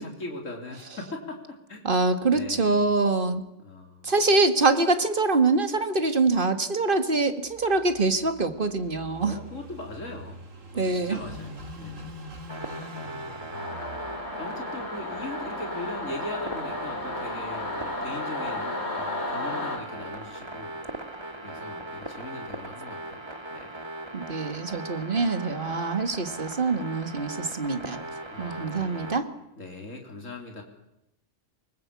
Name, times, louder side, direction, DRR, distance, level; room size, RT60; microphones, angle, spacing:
voice 1, 0.0-1.4 1.7-1.9 2.3-2.8 3.6-4.1 9.2-10.4 10.8-12.3 13.0-13.6 14.4-20.8 21.4-23.2 23.5-23.7 28.3-29.1 29.6-30.6, left 2 dB, 85° left, 2 dB, 3.9 m, -40 dB
voice 2, 1.8-3.4 4.0-9.4 10.8-11.2 24.1-28.0 28.4-29.3, right 3 dB, 45° right, 9 dB, 2.0 m, -24 dB
Car passing by / Idling, 7.5-18.1, equal, 80° right, 2.8 m, -45 dB
sound 1, 12.5-29.2, right 1 dB, 20° right, 2.0 m, -39 dB
Singing / Musical instrument, 13.5-19.8, left 2 dB, 55° left, 3.8 m, -34 dB
24.5 x 21.0 x 8.5 m, 0.85 s
omnidirectional pair, 1.3 m